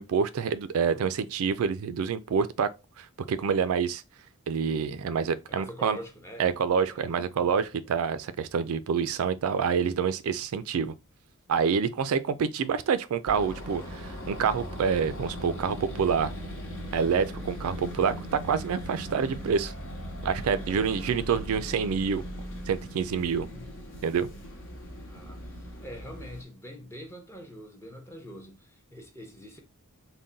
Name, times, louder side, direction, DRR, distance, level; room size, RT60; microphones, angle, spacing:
voice 1, 0.0-2.7 3.0-4.0 4.5-6.0 6.4-10.9 11.5-16.3 16.9-19.7 20.2-22.2 22.7-23.5 24.0-24.3, right 6 dB, 70° right, 0.3 m, -27 dB
voice 2, 5.5-6.5 6.9-7.6 20.3-21.4 23.0-23.8 24.3-24.5 25.1-29.6, equal, 10° left, 0.7 m, -45 dB
sound 1, 13.3-26.4, equal, 60° left, 1.1 m, -39 dB
3.7 x 2.2 x 3.9 m
head